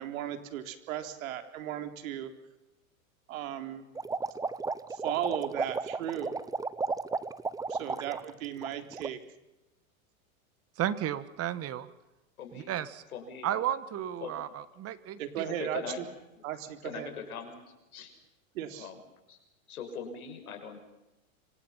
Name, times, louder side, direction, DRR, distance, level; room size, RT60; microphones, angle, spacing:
voice 1, 0.0-2.3 3.3-3.9 4.9-6.3 7.7-9.2 15.2-16.1 16.4-17.1 18.5-18.9, right 11 dB, 70° right, 7 dB, 3.8 m, -36 dB
sound 1, 3.9-8.3 8.6-9.1, right 4 dB, 10° right, 0.8 m, -33 dB
voice 2, 10.8-11.9 12.5-13.0 13.4-15.4, right 11 dB, 35° right, 13 dB, 1.8 m, -33 dB
voice 3, 12.4-12.7 13.1-13.5 14.2-14.3 15.5-16.0 16.3-16.4 16.8-17.6 17.9-18.1 18.8-19.0 19.3-19.4 19.7-20.8, left 6 dB, 85° left, 6 dB, 6.3 m, -41 dB
27.5 x 25.5 x 5.9 m, 0.98 s
hypercardioid pair, 115°, 42 cm